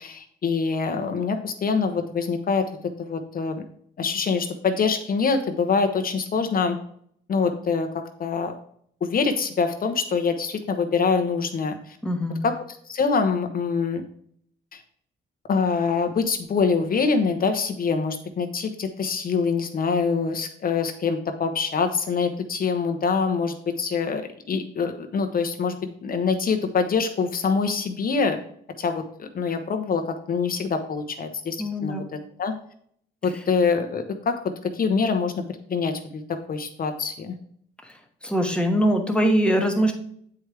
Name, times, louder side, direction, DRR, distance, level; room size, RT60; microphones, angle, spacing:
voice 1, 0.0-2.7 3.0-3.6 4.0-6.8 7.3-8.5 9.0-12.0 12.4-14.0 14.7-14.8 15.5-25.8 26.0-28.4 28.8-32.0 32.4-32.5 33.2-34.4 34.7-35.3 35.7-36.2 36.5-37.3, left 5 dB, 45° left, 6 dB, 0.8 m, -25 dB
voice 2, 12.0-12.4 31.6-32.1 37.8-37.9 38.2-39.9, equal, 5° left, 3 dB, 1.2 m, -22 dB
7.9 x 4.7 x 3.3 m, 0.64 s
cardioid pair, 90°, 20 cm